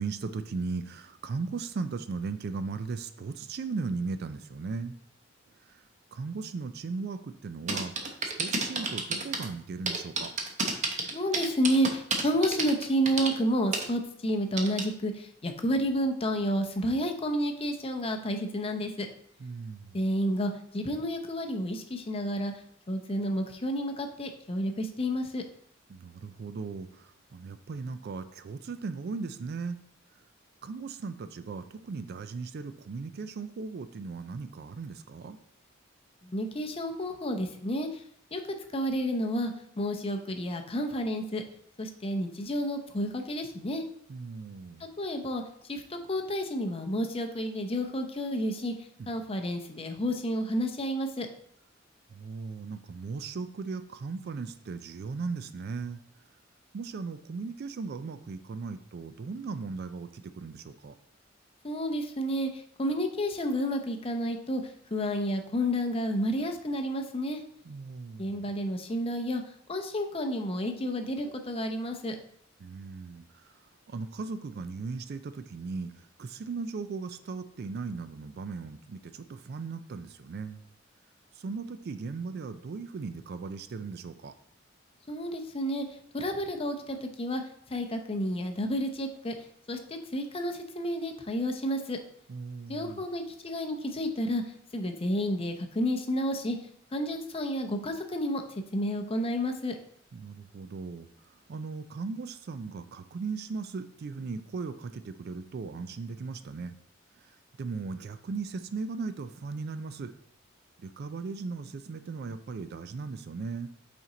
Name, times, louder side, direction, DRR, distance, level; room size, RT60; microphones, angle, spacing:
voice 1, 0.0-5.0 5.7-5.8 6.1-10.3 19.4-20.1 25.9-29.8 30.6-35.4 44.1-44.9 49.0-49.1 52.1-56.0 56.7-61.0 67.6-68.5 72.6-73.5 73.9-75.9 76.2-80.6 81.4-84.3 92.3-93.1 100.1-101.1 101.5-106.7 107.6-110.1 110.8-113.7, right 4 dB, 55° right, 11 dB, 0.4 m, -37 dB
sound 1, 7.7-9.5 9.9-13.3 13.7-13.8 14.6-14.8, right 3 dB, 40° right, 0.8 m, -30 dB
voice 2, 11.1-19.1 19.9-22.5 22.9-25.4 36.2-37.9 38.3-38.4 38.7-39.5 39.8-41.4 41.8-43.8 45.0-45.4 45.7-48.7 49.1-51.3 61.6-64.6 64.9-67.4 68.2-69.4 69.7-72.2 85.1-85.9 86.1-87.4 87.7-89.3 89.7-92.0 92.7-94.4 94.7-96.6 96.9-98.4 98.7-99.7, equal, 30° left, 5 dB, 0.7 m, -30 dB
5.8 x 4.4 x 3.8 m, 0.66 s
head